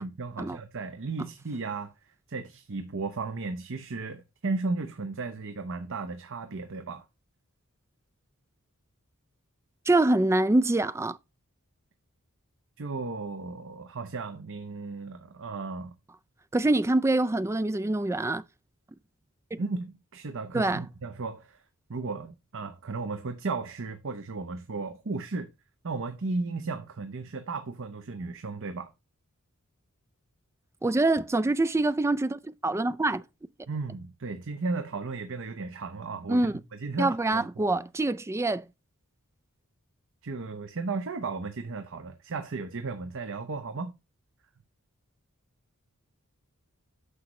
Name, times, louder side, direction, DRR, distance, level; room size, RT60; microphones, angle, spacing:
voice 1, 0.0-1.9 2.3-7.0 12.8-15.9 19.6-21.6 21.9-25.5 25.8-28.9 33.7-36.5 36.8-37.7 40.2-43.9, right 3 dB, 60° right, 0.8 m, -35 dB
voice 2, 9.9-11.2 16.5-18.4 19.5-19.6 20.5-20.8 30.8-33.2 36.3-36.6 37.0-38.6, right 2 dB, 10° right, 0.3 m, -25 dB
9.8 x 6.5 x 3.1 m
head